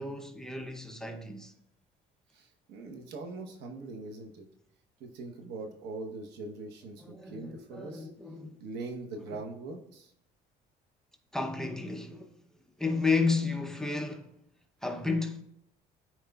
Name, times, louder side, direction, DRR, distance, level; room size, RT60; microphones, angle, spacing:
voice 1, 0.0-1.5 7.0-8.6 9.3-9.4 11.3-12.3 12.8-14.3 14.8-15.4, left 4 dB, 5° left, 0.7 m, -32 dB
voice 2, 2.3-4.4 5.0-8.1 8.6-10.1, right 3 dB, 85° right, 1.0 m, -42 dB
13.0 x 4.6 x 2.3 m
cardioid pair, 110°, 17 cm